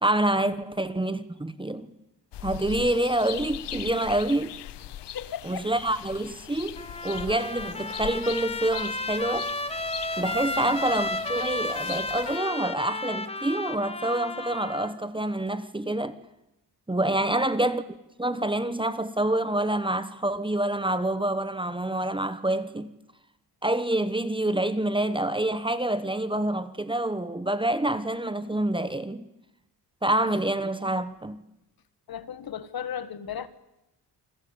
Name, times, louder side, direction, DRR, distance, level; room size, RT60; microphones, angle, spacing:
voice 1, 0.0-1.9 2.4-4.5 5.4-6.8 7.0-9.5 10.2-16.2 16.9-17.8 18.2-22.9 23.6-29.3 30.0-31.4, right 1 dB, 10° right, 1.1 m, -27 dB
sound 1, 2.3-12.4, left 12 dB, 80° left, 0.9 m, -40 dB
voice 2, 5.1-5.7 10.5-10.8 17.0-17.4 32.1-33.5, left 8 dB, 55° left, 1.8 m, -36 dB
Trumpet, 6.8-15.0, left 2 dB, 15° left, 1.6 m, -33 dB
28.5 x 21.5 x 8.7 m
wide cardioid pair, 150°, 42 cm